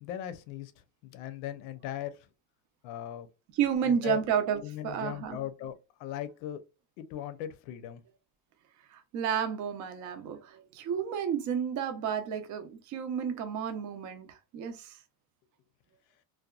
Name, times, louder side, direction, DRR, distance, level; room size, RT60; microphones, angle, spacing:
voice 1, 0.0-2.3 2.8-3.3 3.8-4.2 4.6-6.6 7.0-8.0, left 11 dB, 80° left, 0.6 m, -39 dB
voice 2, 3.6-5.4 8.9-15.0, right 8 dB, 40° right, 0.5 m, -31 dB
2.7 x 2.3 x 2.2 m
cardioid pair, 150°, 46 cm